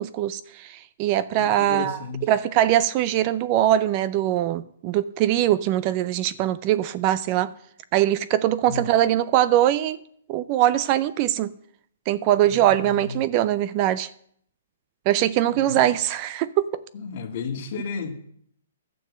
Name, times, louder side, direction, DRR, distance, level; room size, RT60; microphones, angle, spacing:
voice 1, 0.0-2.0 2.3-7.5 7.9-10.0 10.3-11.5 12.1-14.1 15.1-16.8, right 12 dB, 30° right, 0.4 m, -22 dB
voice 2, 1.3-2.3 8.7-8.9 12.4-13.2 15.5-15.8 16.9-18.1, left 5 dB, 45° left, 2.1 m, -33 dB
12.0 x 7.0 x 7.4 m
hypercardioid pair, 160°, 0 cm